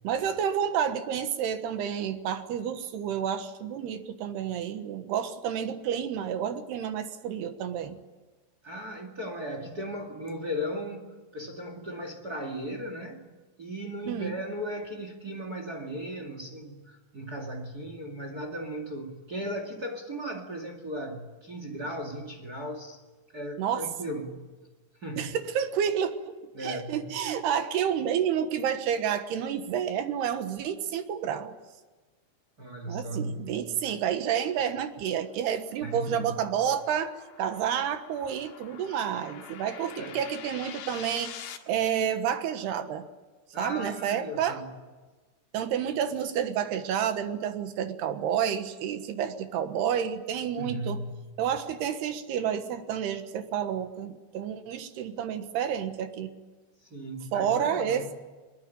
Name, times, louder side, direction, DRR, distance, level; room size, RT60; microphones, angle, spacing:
voice 1, 0.0-8.0 14.1-14.3 23.6-23.9 25.2-26.3 26.6-31.6 32.9-41.3 41.7-43.1 43.6-44.6 45.5-51.0 51.4-56.4 57.3-58.1, right 8 dB, 70° right, 9 dB, 3.3 m, -30 dB
voice 2, 8.6-13.2 13.6-23.0 23.3-24.5 25.0-25.4 26.5-27.2 32.6-33.7 35.8-36.4 40.0-40.2 43.5-44.7 50.6-51.4 56.8-58.1, equal, 35° right, 5 dB, 1.6 m, -37 dB
sound 1, 34.7-41.6, left 9 dB, 90° left, 4.1 m, -46 dB
23.5 x 21.5 x 9.0 m, 1.3 s
omnidirectional pair, 5.2 m